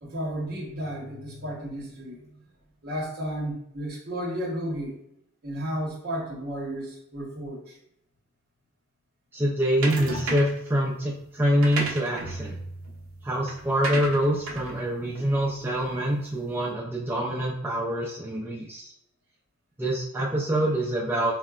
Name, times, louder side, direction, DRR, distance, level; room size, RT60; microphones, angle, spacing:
voice 1, 0.0-2.4 2.8-5.0 5.4-7.8, equal, 50° right, -2 dB, 0.8 m, -33 dB
voice 2, 9.3-12.6 13.2-18.9 19.8-21.4, right 1 dB, 10° right, -5 dB, 0.3 m, -25 dB
sound 1, 9.8-10.7 11.4-16.1, right 2 dB, 80° right, 0.5 m, -34 dB
3.8 x 2.1 x 2.3 m, 0.76 s
head